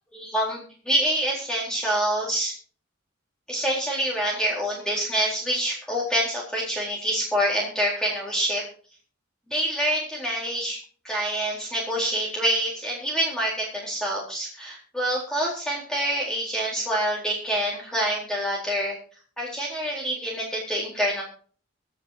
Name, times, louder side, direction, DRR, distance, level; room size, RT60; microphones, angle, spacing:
voice 1, 0.1-2.5 3.5-8.7 9.5-10.8 11.0-19.0 19.4-21.2, right 1 dB, 5° left, -5 dB, 4.0 m, -26 dB
24.5 x 8.3 x 2.9 m, 0.43 s
head